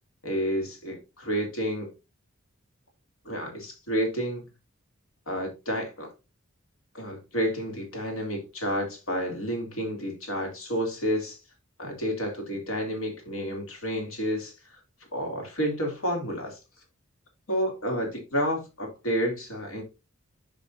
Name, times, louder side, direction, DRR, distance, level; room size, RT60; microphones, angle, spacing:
voice 1, 0.2-1.9 3.2-4.4 5.3-6.1 6.9-11.4 11.8-14.5 15.1-16.6 17.5-19.8, equal, 80° left, 2.7 m, -30 dB
10.0 x 5.2 x 2.6 m
head